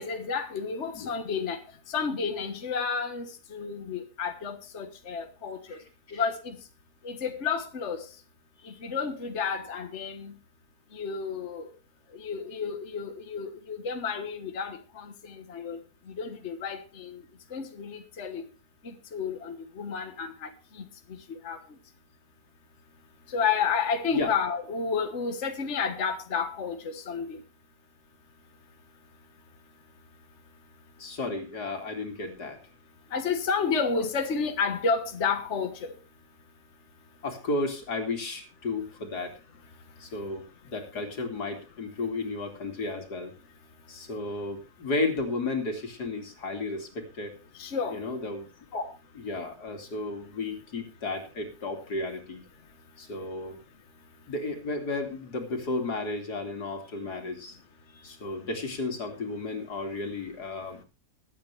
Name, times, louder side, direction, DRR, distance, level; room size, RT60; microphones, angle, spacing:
voice 1, 0.0-1.6 1.9-5.8 6.1-6.6 7.0-8.1 8.7-10.3 10.9-11.7 12.1-15.8 16.2-17.2 17.5-18.4 19.1-20.8 21.3-21.6 23.3-27.4 33.1-35.9 47.5-48.0, left 5 dB, 45° left, 1.6 m, -31 dB
voice 2, 31.0-32.6 37.2-39.4 40.0-43.3 43.9-47.3 47.9-48.8 49.1-52.4 53.0-53.6 54.3-57.6 57.9-60.8, left 3 dB, 80° left, 3.2 m, -33 dB
22.5 x 8.8 x 3.3 m
omnidirectional pair, 1.7 m